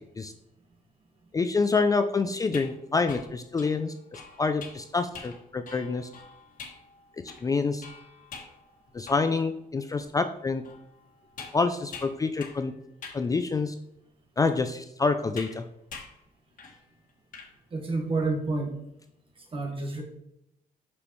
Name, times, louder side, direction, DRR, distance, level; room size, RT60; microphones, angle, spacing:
voice 1, 1.3-6.1 7.2-7.8 8.9-10.6 11.5-12.7 13.1-13.7 14.4-15.6, left 4 dB, 25° left, 8 dB, 0.4 m, -27 dB
sound 1, 2.4-9.5 10.0-10.1 10.6-12.7 13.0-13.3 14.0-14.1 15.4-15.6 15.9-16.2 16.6-16.8 17.1-17.5, left 5 dB, 60° left, 1.5 m, -45 dB
voice 2, 17.7-18.8 19.5-20.0, right 3 dB, 35° right, 2 dB, 1.7 m, -29 dB
6.2 x 5.7 x 3.1 m, 0.79 s
cardioid pair, 105°, 15 cm